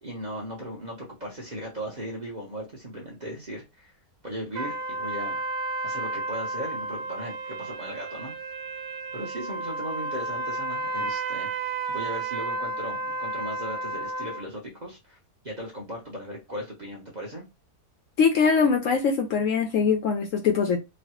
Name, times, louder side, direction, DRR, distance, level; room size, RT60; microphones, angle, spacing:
voice 1, 0.0-3.9 4.2-5.4 5.8-8.3 9.1-15.2 15.4-17.4, equal, 35° right, -4 dB, 0.8 m, -37 dB
sound 1, 4.5-14.4, right 2 dB, 85° right, 0.5 m, -32 dB
voice 2, 18.2-20.8, left 5 dB, 70° left, 4 dB, 0.8 m, -22 dB
3.0 x 2.3 x 2.9 m, 0.24 s
omnidirectional pair, 1.7 m